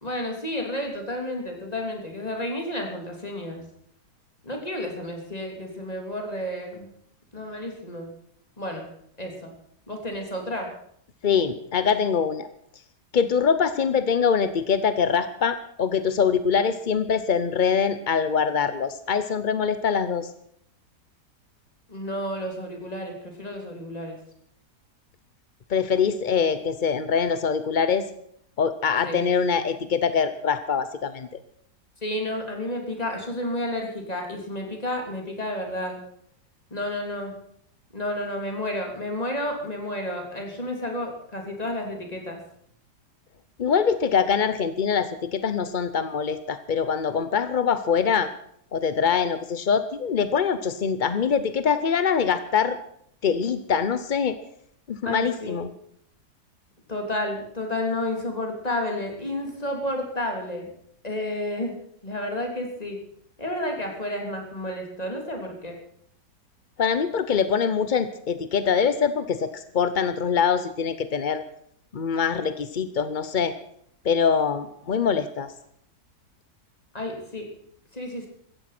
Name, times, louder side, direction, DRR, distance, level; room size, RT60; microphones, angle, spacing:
voice 1, 0.0-3.6 4.4-6.9 7.3-8.1 8.6-8.9 9.2-9.5 9.9-10.7 21.9-24.2 29.0-29.4 32.0-36.0 36.7-37.4 37.9-42.4 55.0-55.6 56.9-60.7 61.0-61.8 62.0-63.0 63.4-65.8 76.9-77.5 77.9-78.3, left 1 dB, 20° left, 2 dB, 3.4 m, -31 dB
voice 2, 11.2-12.5 13.1-20.3 25.7-28.1 28.6-31.3 43.6-48.3 48.7-52.8 53.2-54.4 54.9-55.7 66.8-71.4 71.9-73.5 74.0-75.5, left 6 dB, 50° left, 12 dB, 0.6 m, -23 dB
16.0 x 14.5 x 6.0 m, 0.68 s
omnidirectional pair, 1.9 m